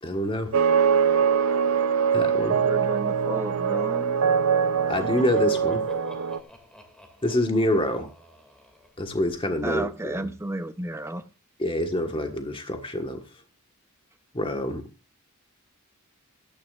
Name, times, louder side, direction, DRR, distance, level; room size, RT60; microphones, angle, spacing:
voice 1, 0.0-0.5 2.1-2.6 4.9-5.8 7.2-8.1 9.0-10.3 11.6-13.2 14.3-14.8, left 1 dB, 25° left, 1.4 m, -26 dB
sound 1, 0.5-6.4, right 7 dB, 85° right, 0.7 m, -23 dB
voice 2, 2.6-4.3 9.6-11.2 12.1-12.2, right 1 dB, 10° right, 0.8 m, -32 dB
Laughter, 4.7-9.4, left 1 dB, 5° left, 2.4 m, -46 dB
16.5 x 13.0 x 2.5 m
head